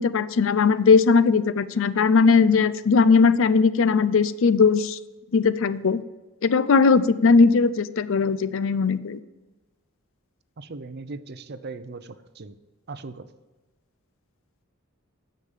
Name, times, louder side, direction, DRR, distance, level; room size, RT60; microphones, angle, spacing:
voice 1, 0.0-5.0 5.3-6.0 6.4-9.2, left 5 dB, 60° left, 16 dB, 0.5 m, -19 dB
voice 2, 10.6-12.5 12.9-13.3, right 3 dB, 50° right, 13 dB, 0.6 m, -38 dB
9.9 x 6.6 x 7.2 m, 1.1 s
head